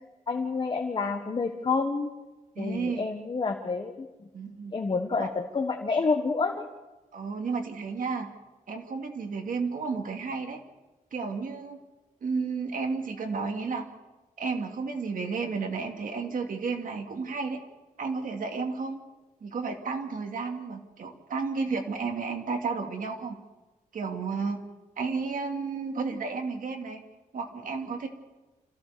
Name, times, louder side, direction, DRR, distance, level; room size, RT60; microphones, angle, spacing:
voice 1, 0.3-2.1 2.6-4.1 4.7-6.6, left 4 dB, 35° left, 4 dB, 1.5 m, -28 dB
voice 2, 2.6-3.1 4.3-4.7 5.2-5.3 7.1-8.3 8.7-10.6 11.1-11.8 12.2-13.9 14.4-17.6 18.0-19.0 19.4-23.4 23.9-24.6 25.0-27.0 27.3-28.1, right 4 dB, 75° right, 4 dB, 2.6 m, -32 dB
26.5 x 15.5 x 6.9 m, 1.2 s
wide cardioid pair, 140°, 14 cm